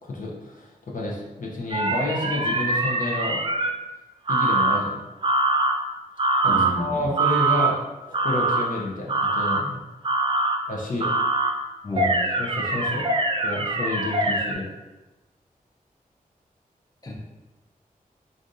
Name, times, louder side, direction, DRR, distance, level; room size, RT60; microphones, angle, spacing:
voice 1, 0.0-3.4 4.3-5.0 6.4-7.8 8.1-9.8 10.7-11.1 11.9-12.1 12.4-13.1 13.4-14.7, left 2 dB, 60° left, -3 dB, 0.7 m, -30 dB
sound 1, 1.7-3.7 4.3-4.8 5.2-5.7 6.2-6.7 7.2-7.7 8.1-8.6 9.1-9.6 10.0-10.6 11.0-11.5 12.0-14.5, right 2 dB, 35° right, 0.4 m, -23 dB
voice 2, 6.5-7.0 11.8-12.1 17.0-17.1, left 1 dB, 25° left, -3 dB, 0.6 m, -29 dB
3.3 x 2.5 x 2.6 m, 1.1 s
cardioid pair, 60°, 15 cm